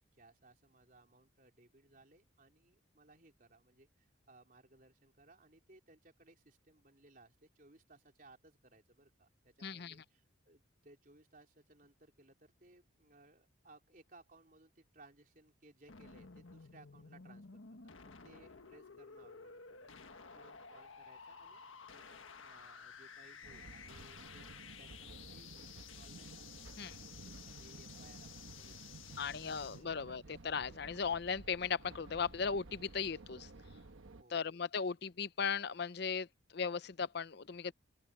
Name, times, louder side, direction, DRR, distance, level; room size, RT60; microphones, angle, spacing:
voice 1, 0.1-21.6 21.9-26.5 26.8-28.8 29.1-30.3 33.8-34.5, right 2 dB, 45° right, 3.8 m, -63 dB
voice 2, 9.6-9.9 26.8-27.0 29.2-33.5 34.3-36.3 36.5-37.7, left 6 dB, 55° left, 0.6 m, -37 dB
sound 1, 15.9-29.8, left 6 dB, 80° left, 1.6 m, -54 dB
sound 2, 23.4-34.2, right 2 dB, 85° right, 1.2 m, -54 dB
open air
head